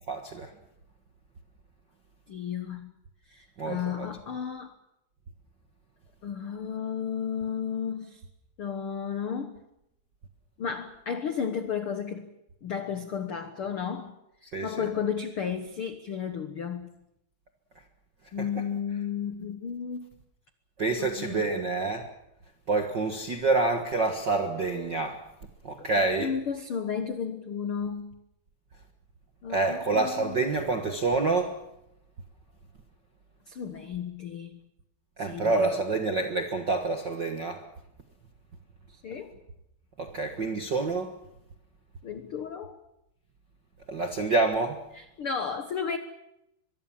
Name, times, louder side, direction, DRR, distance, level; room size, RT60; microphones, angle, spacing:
voice 1, 0.1-0.6 3.6-4.1 14.5-14.9 18.4-18.6 20.8-22.1 22.7-25.3 25.6-26.3 29.5-31.6 35.2-37.6 40.0-41.2 43.9-44.8, right 3 dB, 60° right, 1.1 m, -27 dB
voice 2, 2.3-2.9 3.3-4.8 6.2-8.2 8.6-9.6 10.6-12.3 12.6-14.2 14.6-17.0 18.3-20.1 21.0-21.5 25.8-28.1 29.4-30.4 33.5-34.7 35.2-35.8 38.9-39.3 42.0-42.8 44.9-46.0, left 7 dB, 85° left, 1.2 m, -33 dB
23.5 x 23.0 x 7.4 m
omnidirectional pair, 4.5 m